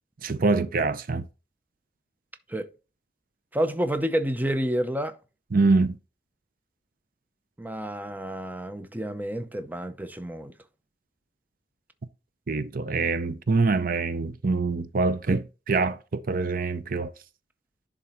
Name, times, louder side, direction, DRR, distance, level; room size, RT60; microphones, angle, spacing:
voice 1, 0.2-1.3 5.5-6.0 12.5-17.1, right 3 dB, 50° right, 0.6 m, -25 dB
voice 2, 3.5-5.2 7.6-10.5, right 1 dB, 10° right, 0.6 m, -29 dB
10.5 x 3.7 x 4.4 m
head